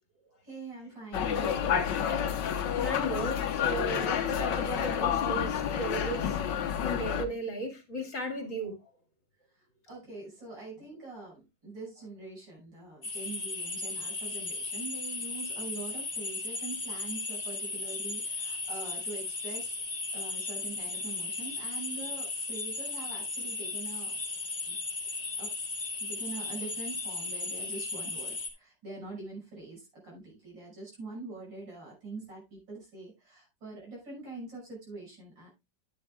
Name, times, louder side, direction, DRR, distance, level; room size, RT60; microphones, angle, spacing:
voice 1, 0.4-1.7 9.5-19.7 20.1-24.1 24.7-24.8 25.4-25.5 26.0-35.5, right 3 dB, 90° right, 6.7 m, -44 dB
sound 1, 1.1-7.2, left 8 dB, 75° left, 1.7 m, -29 dB
voice 2, 2.8-6.4 6.8-8.8, right 1 dB, 45° left, 2.6 m, -35 dB
sound 2, 13.0-28.5, left 3 dB, 25° left, 1.7 m, -36 dB
10.5 x 9.9 x 2.3 m
omnidirectional pair, 2.0 m